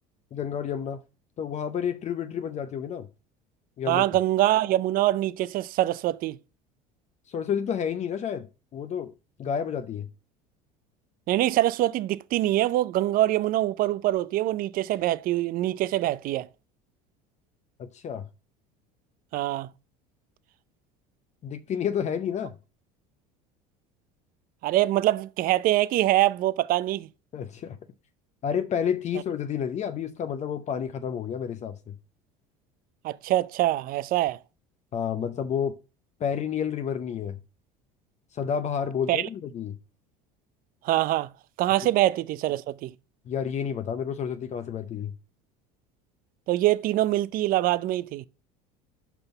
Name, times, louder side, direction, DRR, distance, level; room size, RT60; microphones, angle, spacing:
voice 1, 0.3-1.0 1.4-3.1 3.8-4.1 7.3-8.5 8.7-9.1 9.4-10.1 17.8-18.3 21.4-22.6 27.3-27.8 28.4-32.0 34.9-35.8 36.2-37.4 38.3-39.8 43.3-45.1, left 8 dB, 40° left, 0.7 m, -30 dB
voice 2, 3.9-6.4 11.3-16.5 19.3-19.7 24.6-27.1 33.0-34.4 39.1-39.3 40.8-41.3 41.6-42.9 46.5-48.3, right 15 dB, 50° right, 0.5 m, -24 dB
5.9 x 5.3 x 6.8 m
supercardioid pair, 90°, 18 cm